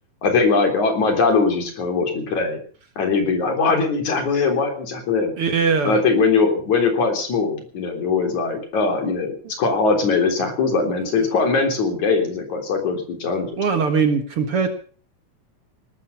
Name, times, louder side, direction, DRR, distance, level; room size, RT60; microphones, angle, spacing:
voice 1, 0.2-2.6 3.0-5.3 5.8-13.5, left 4 dB, 70° left, 4 dB, 4.9 m, -21 dB
voice 2, 5.4-6.0 11.2-11.3 13.6-14.7, right 5 dB, 50° right, 7 dB, 2.2 m, -21 dB
19.0 x 13.0 x 5.8 m, 0.42 s
omnidirectional pair, 3.5 m